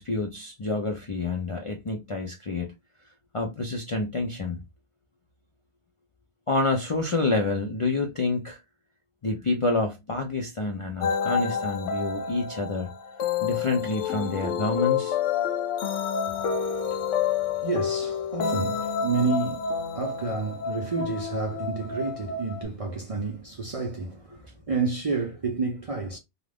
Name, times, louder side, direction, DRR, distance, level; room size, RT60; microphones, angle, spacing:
voice 1, 0.0-2.7 3.3-4.6 6.5-8.6 9.2-12.9 13.4-15.2, left 3 dB, 50° left, 0.4 m, -28 dB
sound 1, 11.0-22.6, left 7 dB, 90° left, 1.0 m, -29 dB
voice 2, 16.3-26.2, right 4 dB, 45° right, 0.4 m, -30 dB
2.5 x 2.3 x 3.3 m
omnidirectional pair, 1.2 m